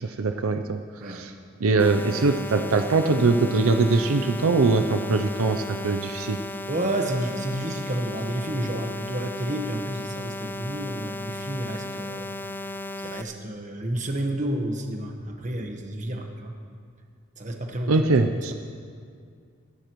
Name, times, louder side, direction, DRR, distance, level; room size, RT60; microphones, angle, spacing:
voice 1, 0.0-1.3 1.6-6.4 17.9-18.5, right 3 dB, 80° right, 6 dB, 0.6 m, -22 dB
voice 2, 1.0-1.3 6.7-12.3 13.0-16.5 17.4-18.1, right 1 dB, 35° right, 3 dB, 1.2 m, -30 dB
sound 1, 1.8-13.2, left 1 dB, 10° left, 0.3 m, -35 dB
22.5 x 11.5 x 3.1 m, 2.2 s
head